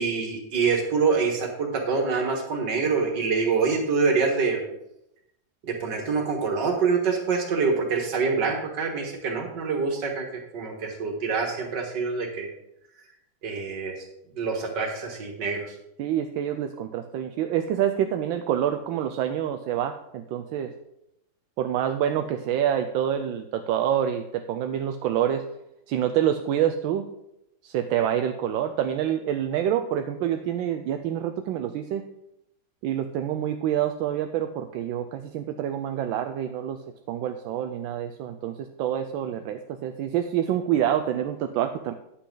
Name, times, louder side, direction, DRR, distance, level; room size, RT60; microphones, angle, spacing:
voice 1, 0.0-4.6 5.6-10.3 10.5-12.5 13.4-14.0 14.4-15.7, right 5 dB, 65° right, 1 dB, 2.2 m, -25 dB
voice 2, 16.0-20.7 21.6-25.4 25.9-27.1 27.6-32.1 32.8-36.8 37.1-41.9, right 10 dB, 85° right, 7 dB, 1.3 m, -27 dB
9.8 x 8.3 x 3.8 m, 0.84 s
omnidirectional pair, 2.1 m